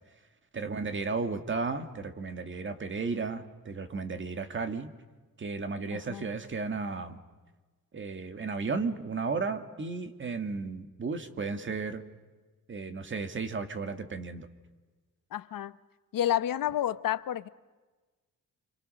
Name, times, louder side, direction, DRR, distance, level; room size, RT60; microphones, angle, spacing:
voice 1, 0.5-4.9 5.4-7.2 7.9-12.0 12.7-14.5, right 4 dB, 35° right, 2.0 m, -34 dB
voice 2, 5.9-6.3 15.3-15.8 16.1-17.5, left 11 dB, 70° left, 0.9 m, -30 dB
30.0 x 26.0 x 6.5 m
wide cardioid pair, 165°, 34 cm